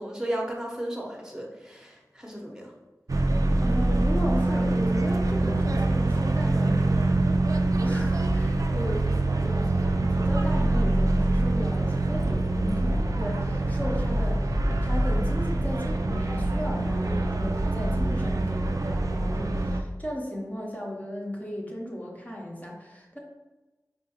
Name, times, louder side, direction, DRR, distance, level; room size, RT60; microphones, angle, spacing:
voice 1, 0.0-2.7, right 1 dB, 10° right, -1 dB, 0.8 m, -34 dB
sound 1, 3.1-19.8, right 2 dB, 60° right, 0.3 m, -24 dB
voice 2, 3.6-7.4 7.8-23.2, equal, 25° left, -2 dB, 0.7 m, -36 dB
4.6 x 2.4 x 2.9 m, 1.1 s
wide cardioid pair, 45°, 7 cm